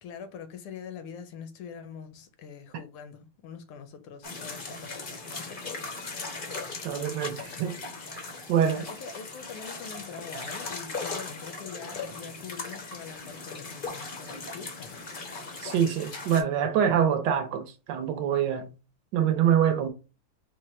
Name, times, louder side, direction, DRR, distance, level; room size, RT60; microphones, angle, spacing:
voice 1, 0.0-5.0 5.4-5.8 8.7-15.1, left 7 dB, 85° left, 1.6 m, -44 dB
sound 1, 4.2-16.4, left 3 dB, 65° left, 0.5 m, -38 dB
voice 2, 6.8-7.8 8.1-8.9 15.6-18.7 19.1-19.9, right 9 dB, 70° right, 1.2 m, -25 dB
4.7 x 2.2 x 4.3 m
omnidirectional pair, 2.4 m